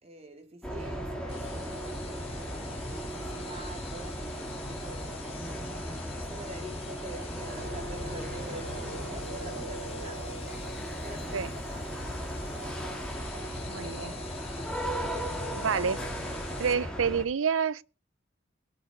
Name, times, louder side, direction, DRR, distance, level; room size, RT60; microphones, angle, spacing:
voice 1, 0.0-10.7 11.0-11.9 12.2-12.8, right 2 dB, 30° right, 2.5 m, -47 dB
sound 1, 0.6-17.2, equal, 5° left, 2.5 m, -36 dB
sound 2, 1.3-16.7, left 6 dB, 30° left, 2.9 m, -47 dB
sound 3, 7.4-13.1, right 2 dB, 65° right, 3.6 m, -45 dB
voice 2, 13.6-14.1 15.6-16.0 16.6-17.8, right 6 dB, 85° right, 0.6 m, -28 dB
22.0 x 7.3 x 4.9 m
head